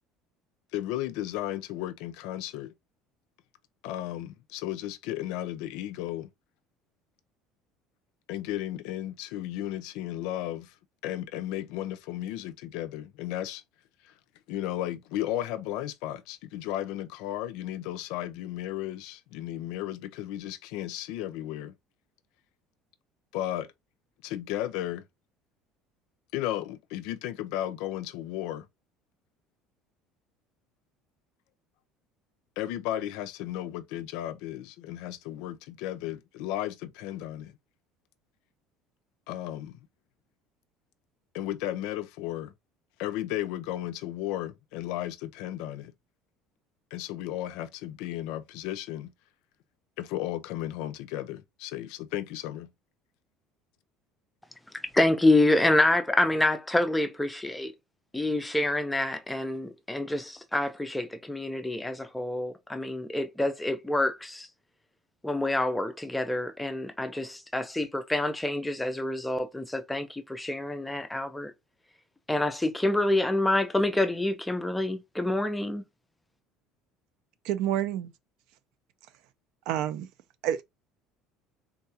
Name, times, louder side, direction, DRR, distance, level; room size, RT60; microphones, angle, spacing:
voice 1, 0.7-2.7 3.8-6.3 8.3-10.7 11.0-13.6 14.0-14.1 14.5-21.7 23.3-23.7 24.2-25.0 26.3-28.7 32.6-37.6 39.3-39.8 41.3-42.5 43.0-45.9 46.9-49.1 50.0-52.7, left 13 dB, 65° left, 0.4 m, -34 dB
voice 2, 54.9-57.7 58.1-64.5 65.2-71.5 72.3-75.8, left 1 dB, 5° left, 0.4 m, -27 dB
voice 3, 77.4-78.1 79.7-80.1 80.4-80.6, right 11 dB, 60° right, 0.4 m, -28 dB
3.7 x 2.3 x 2.7 m
cardioid pair, 175°, 0 cm